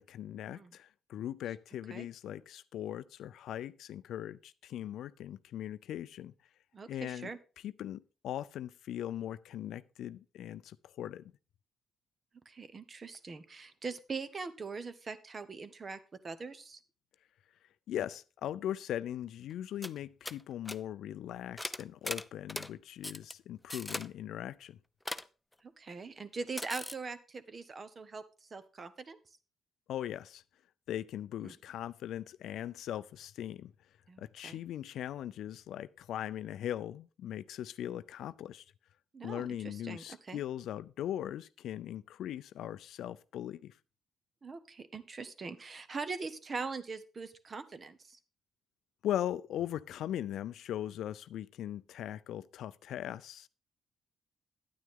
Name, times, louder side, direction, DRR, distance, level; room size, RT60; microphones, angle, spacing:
voice 1, 0.0-6.3 6.9-7.3 7.6-11.3 17.9-24.8 29.9-30.4 30.9-33.7 34.2-38.6 39.2-43.7 49.0-53.5, left 11 dB, 75° left, 0.4 m, -39 dB
voice 2, 6.7-7.4 12.5-16.0 16.2-16.8 25.6-28.2 28.5-29.2 31.4-31.5 34.1-34.6 39.1-40.4 44.4-48.2, right 4 dB, 35° right, 1.0 m, -42 dB
sound 1, 19.5-19.6 19.8-20.0 20.2-20.4 20.7-20.8 21.6-22.7 23.0-23.3 23.7-24.1 25.1-25.3 26.6-26.9, left 1 dB, 10° left, 0.5 m, -39 dB
9.5 x 9.3 x 3.7 m
cardioid pair, 90°, 0 cm